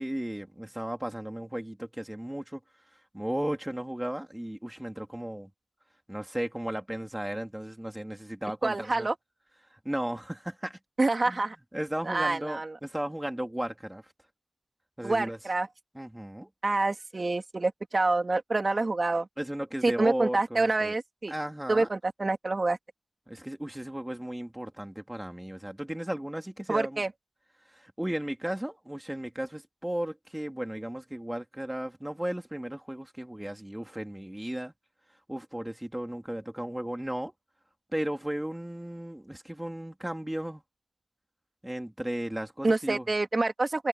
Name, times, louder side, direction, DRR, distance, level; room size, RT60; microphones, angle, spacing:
voice 1, 0.0-2.6 3.1-5.5 6.1-9.1 9.7-10.8 11.2-11.4 11.7-14.0 15.0-15.4 15.9-16.5 19.4-20.9 21.3-21.9 23.3-27.0 27.7-34.7 35.3-37.3 37.9-40.6 41.6-43.1, right 1 dB, 10° right, 3.1 m, -35 dB
voice 2, 8.6-9.1 11.0-11.6 12.1-12.7 15.0-15.7 16.6-19.3 19.8-21.3 21.7-22.8 26.7-27.1 42.6-43.9, right 3 dB, 45° right, 3.5 m, -27 dB
wide cardioid pair, 75°, 0 cm